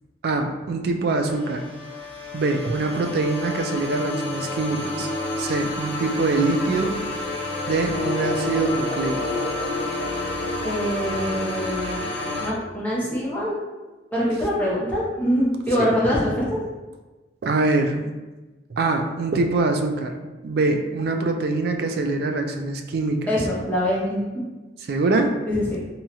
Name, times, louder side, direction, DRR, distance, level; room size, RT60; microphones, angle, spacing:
voice 1, 0.2-1.6 2.3-5.1 5.4-6.9 7.7-9.4 15.8-15.9 17.4-18.1 18.7-20.1 20.4-23.3 24.9-25.4, right 3 dB, 60° right, 4 dB, 0.3 m, -24 dB
sound 1, 1.2-12.5, left 2 dB, 85° left, 0.7 m, -30 dB
sound 2, 7.9-13.5, left 1 dB, 20° right, 0.9 m, -32 dB
voice 2, 10.6-12.0 12.4-13.6 14.1-16.6 23.3-24.4 25.5-25.8, equal, 10° left, -7 dB, 0.7 m, -24 dB
2.8 x 2.3 x 2.7 m, 1.2 s
head